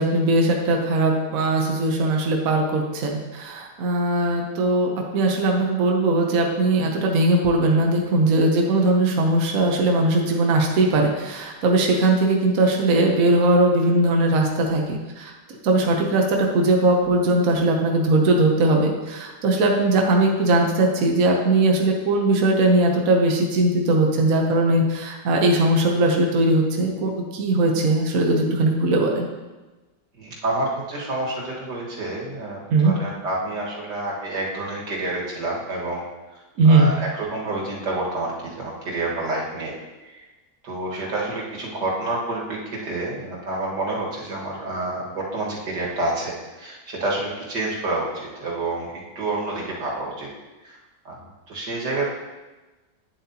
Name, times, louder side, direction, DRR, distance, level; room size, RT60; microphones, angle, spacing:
voice 1, 0.0-15.3 15.6-29.3 32.7-32.9 36.6-36.9, right 2 dB, 60° right, 1 dB, 1.3 m, -20 dB
voice 2, 30.2-36.1 36.3-40.2 40.6-50.3 50.6-50.8 51.1-51.2 51.5-52.1, right 2 dB, 85° right, -4 dB, 2.4 m, -28 dB
9.4 x 7.6 x 2.8 m, 1.2 s
omnidirectional pair, 1.8 m